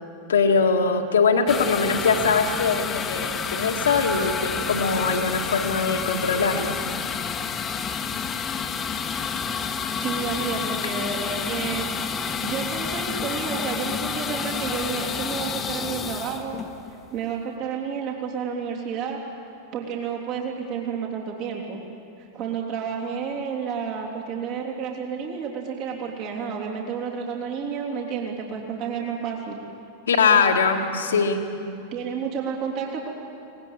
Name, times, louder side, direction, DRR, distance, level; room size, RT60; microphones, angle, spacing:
voice 1, 0.3-6.7 30.1-31.4, left 5 dB, 65° left, 3 dB, 1.9 m, -22 dB
sound 1, 1.5-17.2, left 6 dB, 20° left, 1.4 m, -29 dB
voice 2, 10.0-16.6 17.1-19.2 19.7-21.8 22.3-29.6 31.9-33.1, right 6 dB, 40° right, -1 dB, 3.3 m, -30 dB
24.5 x 19.5 x 8.9 m, 2.7 s
figure-of-eight pair, 90°, 0 cm